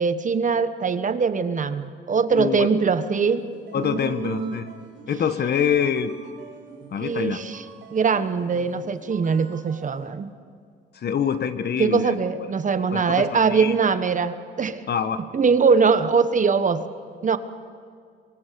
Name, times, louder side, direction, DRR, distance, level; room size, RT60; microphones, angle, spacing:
voice 1, 0.0-3.5 3.8-4.6 7.0-7.6 7.9-10.3 11.8-14.8 15.3-16.8 17.2-17.4, right 5 dB, 40° right, 11 dB, 1.3 m, -22 dB
voice 2, 2.3-2.7 3.7-4.7 5.1-6.1 6.9-7.4 10.9-12.2 12.9-13.7 14.9-15.2, left 7 dB, 55° left, 11 dB, 1.4 m, -25 dB
sound 1, 3.2-10.1, right 5 dB, 70° right, 4.9 m, -46 dB
25.5 x 23.5 x 6.9 m, 2.1 s
cardioid pair, 90°, 20 cm